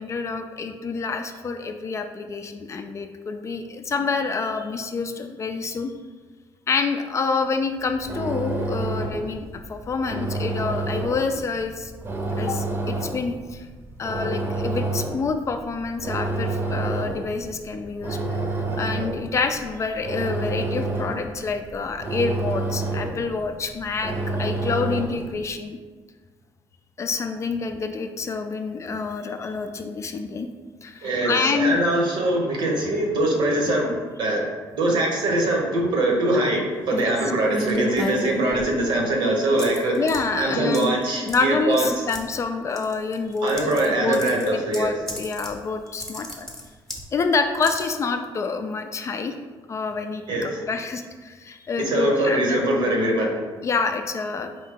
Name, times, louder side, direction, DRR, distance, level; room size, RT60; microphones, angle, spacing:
voice 1, 0.0-5.9 6.7-11.9 12.4-13.7 14.0-18.2 18.8-25.8 27.0-30.5 30.8-31.8 36.9-37.1 37.5-37.8 39.9-41.0 41.3-46.5 47.1-49.3 49.7-52.6 53.6-54.6, left 4 dB, 35° left, 6 dB, 0.3 m, -27 dB
sound 1, 7.8-25.4, right 2 dB, 30° right, 0.7 m, -29 dB
voice 2, 31.0-40.0 40.4-41.9 43.4-44.9 50.3-50.5 51.8-53.4, right 1 dB, 65° right, 0 dB, 1.0 m, -22 dB
sound 2, 37.5-38.8 39.6-40.2 40.7-41.0 41.3-41.4 41.7-42.2 42.8-43.9 44.1-45.5 45.9-47.0 47.6-47.8, left 1 dB, 5° left, 0.7 m, -31 dB
4.3 x 2.7 x 3.7 m, 1.4 s
cardioid pair, 105°, 8 cm